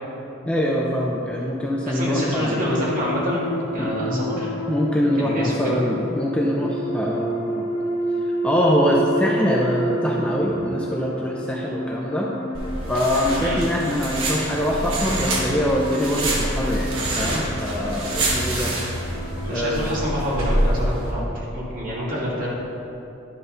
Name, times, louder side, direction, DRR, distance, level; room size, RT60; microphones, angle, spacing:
voice 1, 0.5-2.6 3.8-4.3 4.7-7.7 8.4-12.3 12.9-18.7 19.5-19.9, equal, 5° left, -3 dB, 0.5 m, -23 dB
sound 1, 1.9-20.1, equal, 60° left, 1.7 m, -31 dB
voice 2, 1.9-4.5 5.2-5.8 13.4-13.6 19.4-22.5, equal, 40° right, -6 dB, 2.1 m, -26 dB
sound 2, 12.5-21.1, right 1 dB, 80° right, 1.6 m, -26 dB
11.5 x 4.0 x 5.6 m, 2.9 s
head